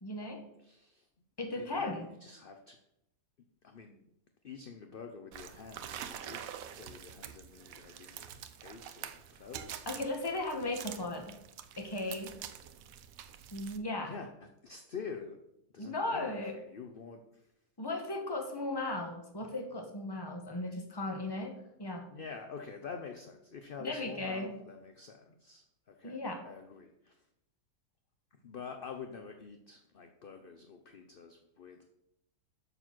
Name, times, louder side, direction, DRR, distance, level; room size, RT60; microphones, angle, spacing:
voice 1, 0.0-0.4 1.4-2.1 9.9-11.4 11.8-12.4 13.5-14.1 15.8-16.6 17.8-22.1 23.8-24.6 26.0-26.4, left 2 dB, 15° left, 4 dB, 1.1 m, -36 dB
voice 2, 0.6-1.1 1.5-2.8 3.6-4.0 4.4-6.4 6.7-9.8 14.0-14.3 14.6-15.4 15.7-17.5 22.1-27.3 28.3-31.9, left 5 dB, 50° left, 5 dB, 0.7 m, -47 dB
sound 1, 5.3-13.8, right 9 dB, 70° right, 1.0 m, -46 dB
6.9 x 6.6 x 6.0 m, 0.83 s
omnidirectional pair, 1.7 m